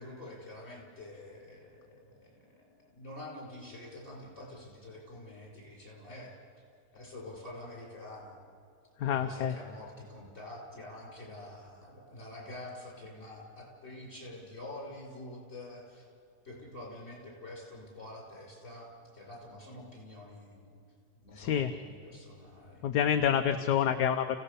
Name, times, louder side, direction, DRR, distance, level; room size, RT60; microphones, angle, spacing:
voice 1, 0.0-6.3 6.9-8.4 9.1-16.1 16.4-20.7 21.1-22.9 23.5-23.7, left 1 dB, 35° left, -2 dB, 6.5 m, -47 dB
voice 2, 9.0-9.5 21.4-21.7 22.8-24.4, left 9 dB, 75° left, 7 dB, 1.4 m, -27 dB
29.5 x 17.0 x 6.9 m, 2.5 s
omnidirectional pair, 1.8 m